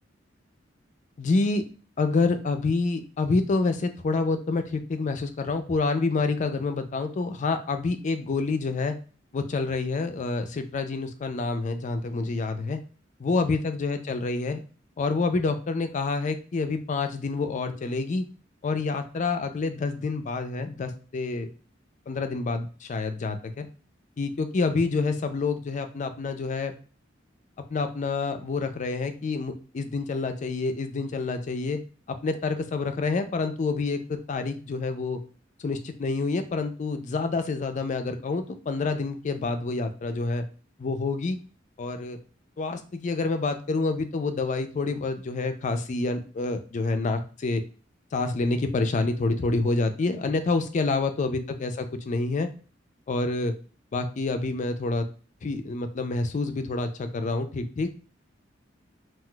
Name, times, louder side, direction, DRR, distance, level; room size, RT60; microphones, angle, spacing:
voice 1, 1.2-1.6 2.0-9.0 9.3-12.8 13.2-14.6 15.0-18.3 18.6-21.5 22.1-23.7 24.2-26.7 27.7-31.8 32.1-35.2 35.6-40.4 40.8-41.4 41.8-42.2 42.6-47.6 48.1-52.5 53.1-53.5 53.9-55.1 55.4-57.9, left 3 dB, 40° left, 8 dB, 0.4 m, -27 dB
3.8 x 2.4 x 2.3 m, 0.38 s
head